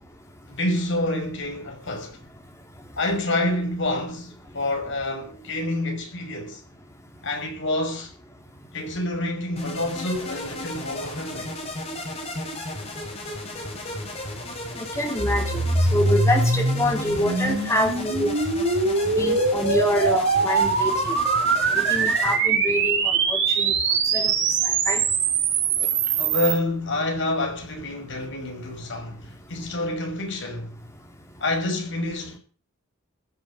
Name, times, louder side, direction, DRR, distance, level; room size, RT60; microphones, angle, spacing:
voice 1, 0.4-2.2 3.0-6.6 7.2-8.1 8.7-11.5 13.9-14.0 19.1-19.3 26.0-30.8 31.4-32.4, left 1 dB, 55° left, 5.9 m, -28 dB
sound 1, 9.6-22.4, left 1 dB, 30° left, 5.5 m, -34 dB
voice 2, 14.8-15.6 15.9-18.3 19.2-20.9 21.7-23.0 23.3-23.7 24.1-24.3 24.9-25.0, equal, 15° left, 4.0 m, -25 dB
sound 2, 15.2-26.6, right 4 dB, 55° right, 4.4 m, -23 dB
16.0 x 8.5 x 8.3 m
head